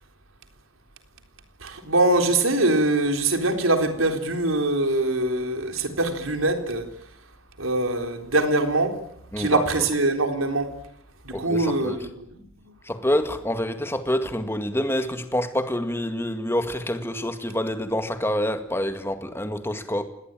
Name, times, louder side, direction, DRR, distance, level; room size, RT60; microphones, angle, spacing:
voice 1, 1.6-6.9 7.6-9.0 9.4-10.7 11.2-12.4, right 2 dB, 90° right, 3.8 m, -23 dB
voice 2, 9.3-9.6 11.3-12.0 12.8-20.1, left 1 dB, 10° left, 2.0 m, -27 dB
27.0 x 19.5 x 9.0 m
head